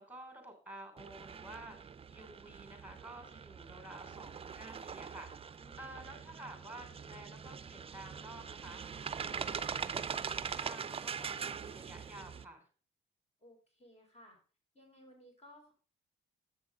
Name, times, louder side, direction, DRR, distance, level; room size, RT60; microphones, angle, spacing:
voice 1, 0.0-12.7, right 1 dB, 10° right, 5 dB, 3.2 m, -51 dB
sound 1, 1.0-12.4, right 6 dB, 30° right, 0.5 m, -42 dB
voice 2, 5.6-6.1 13.4-14.4 14.7-15.7, left 1 dB, 30° left, 1 dB, 4.3 m, -59 dB
7.7 x 6.1 x 5.0 m, 0.39 s
cardioid pair, 90°, 20 cm